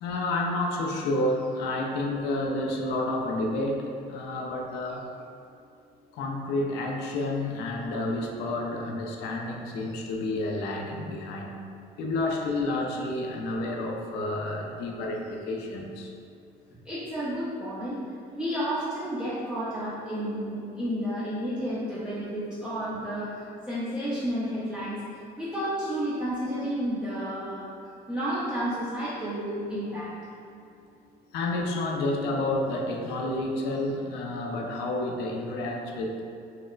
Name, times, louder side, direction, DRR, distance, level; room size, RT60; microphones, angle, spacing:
voice 1, 0.0-5.1 6.1-11.6 12.0-16.1 31.3-36.2, left 2 dB, 85° left, 1 dB, 0.4 m, -30 dB
voice 2, 16.9-18.0 18.3-23.3 23.7-25.0 25.4-27.7 28.1-30.1, equal, 5° right, -11 dB, 0.5 m, -31 dB
4.1 x 2.0 x 2.4 m, 2.5 s
cardioid pair, 110°, 17 cm